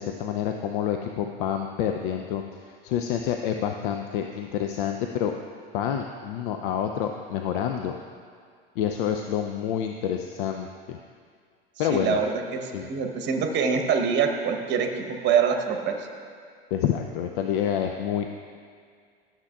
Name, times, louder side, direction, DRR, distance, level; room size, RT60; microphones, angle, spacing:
voice 1, 0.0-5.3 5.7-8.0 8.8-11.0 11.8-12.2 12.7-12.9 16.7-18.4, left 9 dB, 60° left, 5 dB, 0.5 m, -28 dB
voice 2, 11.9-12.6 12.9-16.1, right 6 dB, 35° right, 5 dB, 1.0 m, -24 dB
13.0 x 7.3 x 2.3 m, 2.1 s
figure-of-eight pair, 80°, 30 cm